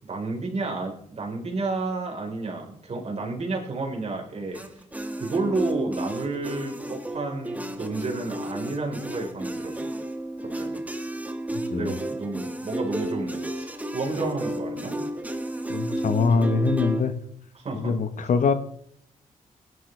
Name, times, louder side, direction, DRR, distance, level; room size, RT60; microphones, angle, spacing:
voice 1, 0.0-4.6 5.2-9.9 10.4-10.8 11.7-15.0 17.5-17.9, right 3 dB, 50° right, 1 dB, 4.3 m, -31 dB
sound 1, 4.5-17.0, right 1 dB, 10° right, 1.6 m, -32 dB
voice 2, 11.5-11.9 15.7-17.2 17.7-18.5, left 4 dB, 65° left, 11 dB, 1.2 m, -23 dB
17.5 x 11.0 x 3.4 m, 0.68 s
cardioid pair, 75°, 14 cm